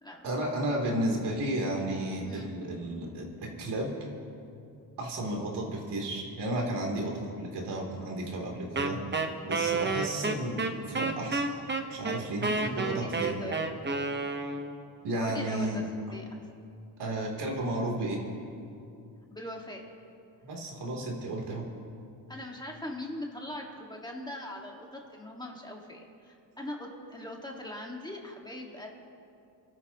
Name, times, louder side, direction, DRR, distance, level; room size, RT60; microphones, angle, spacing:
voice 1, 0.2-3.2 3.6-3.9 5.0-9.0 9.4-11.5 11.9-13.4 15.0-15.8 17.0-18.2 20.4-21.6, right 1 dB, 75° right, -1 dB, 3.2 m, -33 dB
Wind instrument woodwind instrument, 8.8-14.8, right 3 dB, 25° right, 1.0 m, -30 dB
voice 2, 12.4-13.7 15.1-16.5 19.3-19.8 22.3-28.9, left 1 dB, 10° left, 0 dB, 1.8 m, -41 dB
28.0 x 13.0 x 3.0 m, 2.6 s
cardioid pair, 115°, 41 cm